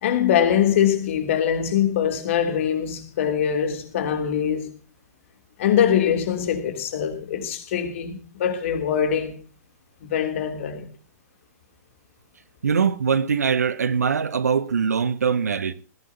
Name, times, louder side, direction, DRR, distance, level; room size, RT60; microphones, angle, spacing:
voice 1, 0.0-4.8 5.6-9.4 10.0-10.9, left 9 dB, 50° left, 3.2 m, -23 dB
voice 2, 12.6-15.7, right 6 dB, 65° right, 1.1 m, -22 dB
20.0 x 16.5 x 2.9 m
figure-of-eight pair, 110°, 9 cm